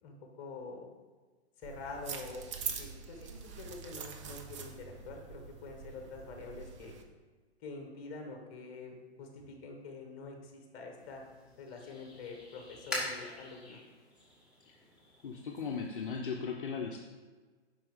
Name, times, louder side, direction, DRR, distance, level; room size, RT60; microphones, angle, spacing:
voice 1, 0.0-0.9 1.6-2.5 2.8-7.0 7.6-11.2 11.6-13.8, left 3 dB, 25° left, 3 dB, 1.1 m, -46 dB
sound 1, 1.6-7.0, right 6 dB, 30° right, 0.5 m, -44 dB
sound 2, 11.0-16.2, left 1 dB, ahead, 1.3 m, -44 dB
voice 2, 15.2-17.0, left 5 dB, 50° left, 1 dB, 0.6 m, -37 dB
7.5 x 5.4 x 3.6 m, 1.4 s
figure-of-eight pair, 125°, 34 cm